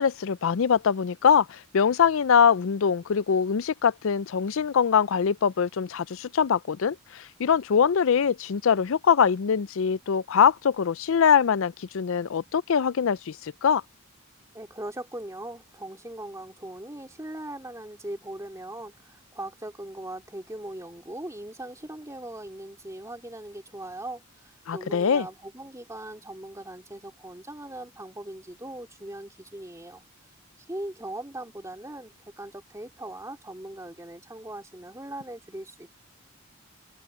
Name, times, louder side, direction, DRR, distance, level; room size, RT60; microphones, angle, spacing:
voice 1, 0.0-13.8 24.7-25.3, left 7 dB, 65° left, 0.4 m, -23 dB
voice 2, 14.5-30.0 30.7-35.9, right 1 dB, 15° right, 2.8 m, -40 dB
head